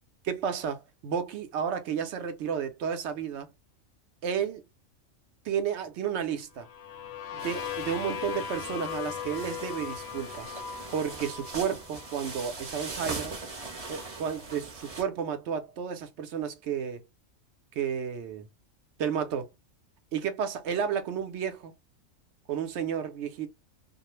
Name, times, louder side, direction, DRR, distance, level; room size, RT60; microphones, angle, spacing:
voice 1, 0.2-3.5 4.2-4.6 5.4-6.7 7.3-10.6 10.9-13.4 13.9-17.0 17.8-18.5 19.0-19.5 20.1-21.7 22.5-23.5, right 7 dB, 65° right, 0.8 m, -32 dB
sound 1, 6.6-12.4, left 8 dB, 65° left, 0.7 m, -38 dB
sound 2, 7.4-15.0, right 3 dB, 30° right, 0.7 m, -41 dB
2.4 x 2.0 x 3.0 m
omnidirectional pair, 1.4 m